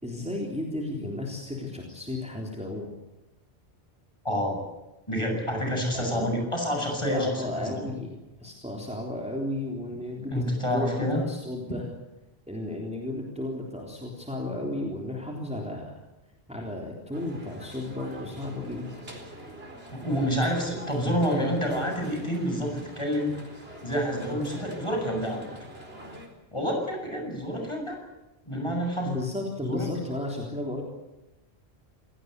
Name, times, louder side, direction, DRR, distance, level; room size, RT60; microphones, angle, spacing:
voice 1, 0.0-2.9 5.9-6.3 7.1-10.5 10.7-11.8 12.5-16.0 16.5-19.1 29.0-30.8, left 1 dB, 5° right, -1 dB, 3.7 m, -34 dB
voice 2, 4.2-4.6 5.1-7.9 10.3-11.2 19.9-23.4 23.8-25.4 26.5-28.0 28.5-29.2 29.6-29.9, equal, 25° left, 2 dB, 7.9 m, -28 dB
sound 1, 17.1-26.3, right 1 dB, 65° right, 4.8 m, -43 dB
28.0 x 17.5 x 8.2 m, 1.0 s
omnidirectional pair, 1.1 m